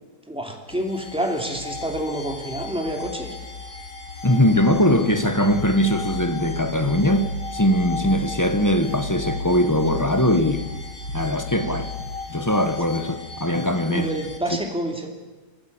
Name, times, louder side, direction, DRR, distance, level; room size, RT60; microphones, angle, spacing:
voice 1, 0.3-3.3 13.9-15.1, right 1 dB, 5° right, 3.0 m, -28 dB
sound 1, 0.7-14.4, left 2 dB, 80° left, 3.3 m, -34 dB
voice 2, 4.2-10.7 11.1-11.9 12.3-14.1, left 1 dB, 15° left, 0.8 m, -21 dB
24.0 x 15.5 x 8.7 m
omnidirectional pair, 1.9 m